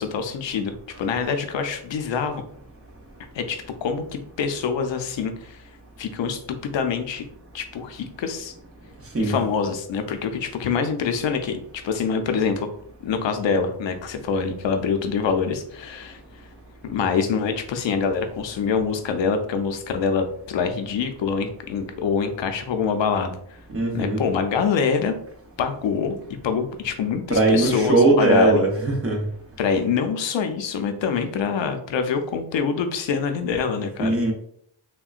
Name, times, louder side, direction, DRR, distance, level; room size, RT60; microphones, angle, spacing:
voice 1, 0.0-2.4 3.3-5.6 6.0-7.3 7.5-8.5 9.2-12.7 13.0-16.5 16.9-23.6 23.9-25.1 25.6-26.2 26.4-28.7 29.6-34.1, left 6 dB, 65° left, 6 dB, 0.5 m, -25 dB
voice 2, 23.7-24.2 27.3-29.2 34.0-34.3, right 2 dB, 30° right, 1 dB, 0.7 m, -19 dB
3.6 x 2.1 x 2.4 m, 0.66 s
wide cardioid pair, 105°, 49 cm